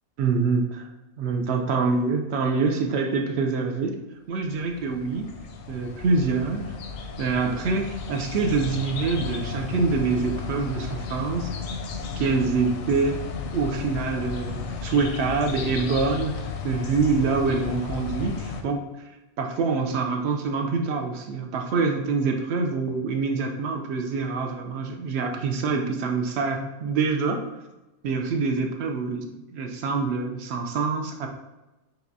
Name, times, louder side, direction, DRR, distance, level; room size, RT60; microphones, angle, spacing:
voice 1, 0.2-0.9 1.2-3.9 4.3-5.3 5.7-6.7 7.2-11.5 12.2-13.2 13.5-16.4 16.6-18.8 19.4-27.4 28.0-29.3 29.5-31.3, right 4 dB, 65° right, 4 dB, 0.7 m, -25 dB
sound 1, 4.5-18.6, left 5 dB, 65° left, 0.7 m, -34 dB
5.8 x 2.9 x 2.6 m, 1.0 s
omnidirectional pair, 1.5 m